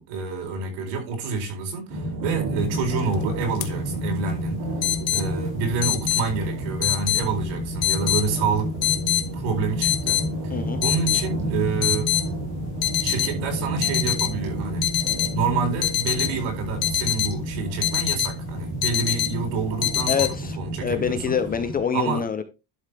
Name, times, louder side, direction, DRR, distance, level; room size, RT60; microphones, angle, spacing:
voice 1, 0.0-4.6 5.1-8.7 9.3-10.5 10.8-12.1 13.0-14.8 15.3-21.4 21.9-22.2, right 5 dB, 75° right, 4.4 m, -28 dB
sound 1, 1.9-21.8, equal, 45° right, 4.3 m, -30 dB
sound 2, 2.9-3.1 3.6-3.7 4.8-5.2 5.8-6.2 6.8-7.2 7.8-8.2 8.8-9.2 9.8-10.2 10.8-11.2 11.8-12.2 12.8-13.3 13.8-14.3 14.8-15.3 15.8-16.3 16.8-17.3 17.8-18.3 18.8-19.3 19.8-20.3, left 12 dB, 50° left, 1.3 m, -24 dB
voice 2, 10.5-10.8 20.1-22.4, left 7 dB, 20° left, 0.5 m, -26 dB
11.5 x 6.4 x 3.4 m
cardioid pair, 175°, 47 cm